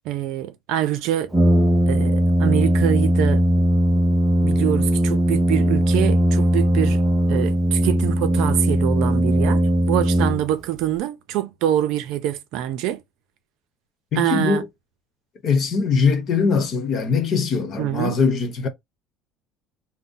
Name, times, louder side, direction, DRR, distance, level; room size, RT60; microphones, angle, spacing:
voice 1, 0.0-1.3 1.9-3.4 4.4-7.0 7.3-13.0 14.2-14.6 17.8-18.2, right 12 dB, 70° right, 0.5 m, -25 dB
Brass instrument, 1.3-10.8, right 1 dB, 10° right, 0.7 m, -19 dB
voice 2, 14.1-14.7 15.4-18.7, left 5 dB, 45° left, 1.0 m, -21 dB
2.7 x 2.1 x 3.8 m
cardioid pair, 125°, 0 cm